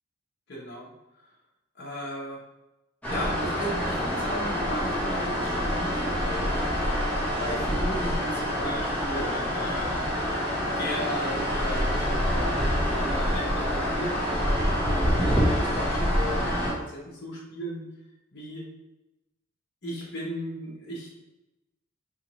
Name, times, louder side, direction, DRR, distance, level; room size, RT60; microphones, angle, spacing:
voice 1, 0.5-0.9 1.8-2.4 3.1-6.7 7.4-10.0 10.5-17.9 18.3-18.6 19.8-21.1, equal, 55° left, -5 dB, 0.9 m, -36 dB
sound 1, 3.0-16.7, equal, 5° left, 1.0 m, -26 dB
4.1 x 2.8 x 3.0 m, 0.96 s
head